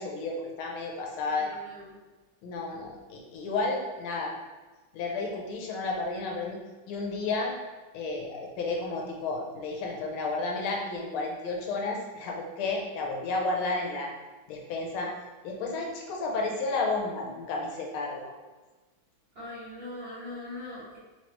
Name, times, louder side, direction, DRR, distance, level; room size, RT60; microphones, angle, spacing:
voice 1, 0.0-1.6 2.4-4.3 4.9-6.6 6.9-7.5 7.9-14.1 14.5-15.1 15.4-18.3, left 3 dB, 90° left, 0 dB, 1.6 m, -32 dB
voice 2, 1.3-2.0 19.3-21.0, left 2 dB, 50° right, -11 dB, 1.3 m, -41 dB
3.8 x 3.1 x 2.9 m, 1.2 s
omnidirectional pair, 2.2 m